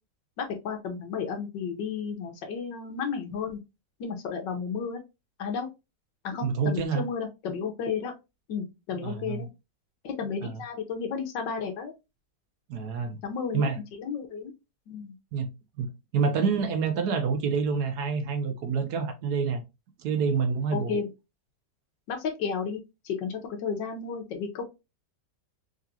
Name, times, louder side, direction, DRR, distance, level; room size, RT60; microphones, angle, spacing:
voice 1, 0.4-3.6 4.0-5.0 5.4-5.7 6.2-8.1 8.5-9.5 10.0-11.9 13.2-14.5 14.9-15.1 20.7-21.1 22.1-24.6, left 6 dB, 85° left, 1.6 m, -33 dB
voice 2, 6.4-7.1 8.9-9.5 10.4-10.6 12.7-13.2 13.5-13.8 15.3-15.5 15.8-19.6 20.0-21.0, right 5 dB, 70° right, 1.2 m, -27 dB
4.0 x 3.0 x 2.7 m
omnidirectional pair, 1.9 m